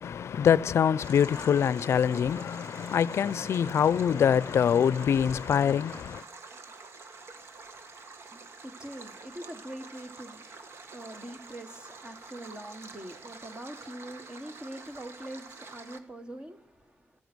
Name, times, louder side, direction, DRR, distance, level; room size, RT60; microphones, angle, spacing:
voice 1, 0.0-6.2, left 8 dB, 75° left, 0.5 m, -24 dB
Stream, 1.0-16.0, right 4 dB, 60° right, 1.6 m, -48 dB
voice 2, 7.2-17.2, right 1 dB, 20° right, 1.6 m, -44 dB
15.0 x 13.5 x 6.2 m
wide cardioid pair, 170°, 5 cm